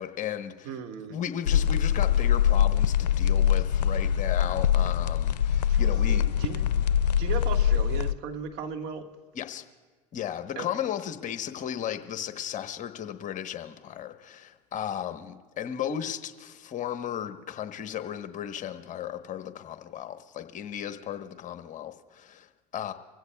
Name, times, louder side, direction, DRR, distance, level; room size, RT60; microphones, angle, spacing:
voice 1, 0.0-0.7 1.1-6.3 9.3-9.6 10.1-22.9, left 10 dB, 40° left, 8 dB, 1.1 m, -35 dB
voice 2, 0.6-1.2 5.7-6.8 7.2-9.1 10.5-10.7, right 6 dB, 55° right, 4 dB, 1.7 m, -36 dB
sound 1, 1.5-8.1, left 9 dB, 85° left, 0.4 m, -23 dB
25.0 x 16.0 x 2.3 m, 1.4 s
hypercardioid pair, 85°, 21 cm